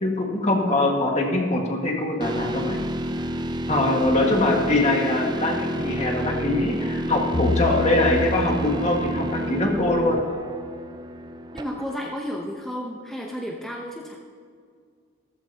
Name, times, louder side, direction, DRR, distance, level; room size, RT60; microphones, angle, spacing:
voice 1, 0.0-2.8 3.7-10.2, left 2 dB, 35° left, 0 dB, 1.7 m, -23 dB
sound 1, 2.2-12.2, equal, 20° right, 0.5 m, -29 dB
sound 2, 7.3-10.1, left 2 dB, 60° left, 3.5 m, -30 dB
voice 2, 11.5-14.2, equal, ahead, -2 dB, 0.8 m, -32 dB
15.0 x 14.0 x 2.9 m, 2.1 s
head